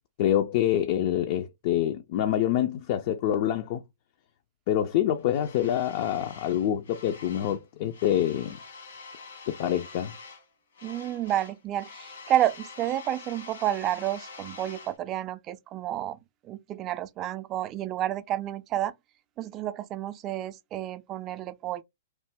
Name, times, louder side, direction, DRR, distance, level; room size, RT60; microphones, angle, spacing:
voice 1, 0.2-3.8 4.7-8.6 9.5-10.1, left 11 dB, 50° left, 0.4 m, -26 dB
sound 1, 5.3-7.6 7.9-10.5 10.7-15.0, left 4 dB, 75° left, 1.3 m, -46 dB
voice 2, 10.8-16.2 16.4-18.9 19.4-21.8, right 12 dB, 30° right, 0.4 m, -30 dB
3.0 x 2.1 x 3.3 m
hypercardioid pair, 115°, 0 cm